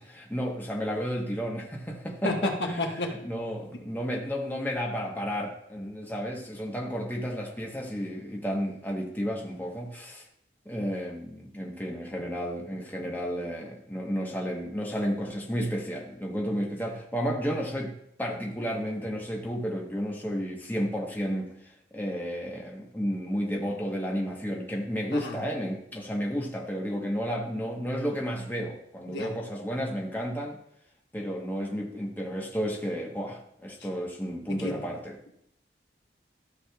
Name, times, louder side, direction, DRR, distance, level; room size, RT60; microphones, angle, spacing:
voice 1, 0.0-10.2 10.6-17.9 18.2-21.5 21.9-30.6 31.1-35.1, equal, 10° left, -1 dB, 1.0 m, -32 dB
voice 2, 2.8-3.1 25.1-25.4 29.1-29.3 34.6-34.7, left 2 dB, 75° left, 2 dB, 1.3 m, -30 dB
13.0 x 6.4 x 2.3 m, 0.73 s
head